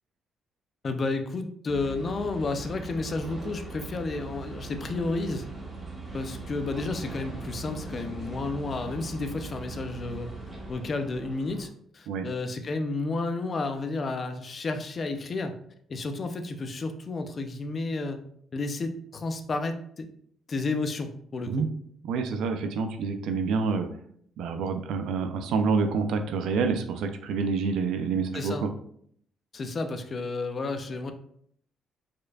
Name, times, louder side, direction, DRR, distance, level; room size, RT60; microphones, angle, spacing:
voice 1, 0.8-5.4 6.1-10.3 10.7-15.6 15.9-18.2 18.5-20.1 20.5-21.7 28.3-28.7 29.5-31.1, left 3 dB, 35° left, 7 dB, 0.5 m, -31 dB
sound 1, 1.7-11.7, right 3 dB, 15° right, 1.0 m, -40 dB
voice 2, 22.1-23.9 24.4-28.7, right 5 dB, 80° right, 7 dB, 0.5 m, -27 dB
5.0 x 4.3 x 2.3 m, 0.65 s
cardioid pair, 145°, 0 cm